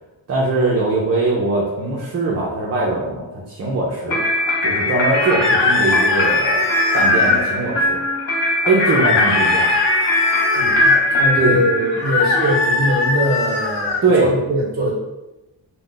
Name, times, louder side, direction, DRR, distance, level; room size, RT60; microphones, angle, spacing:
voice 1, 0.3-4.2 4.6-8.0 8.7-9.7 11.4-11.6 14.0-14.3, right 3 dB, 35° right, -4 dB, 0.4 m, -21 dB
sound 1, 4.1-12.4, left 1 dB, 80° left, 1.0 m, -21 dB
sound 2, 5.2-7.4 8.8-11.0 12.0-14.0, left 3 dB, 60° left, 0.5 m, -19 dB
voice 2, 10.5-13.9 14.2-14.9, equal, 20° right, -4 dB, 0.9 m, -21 dB
2.3 x 2.1 x 3.7 m, 1.0 s
wide cardioid pair, 180°, 47 cm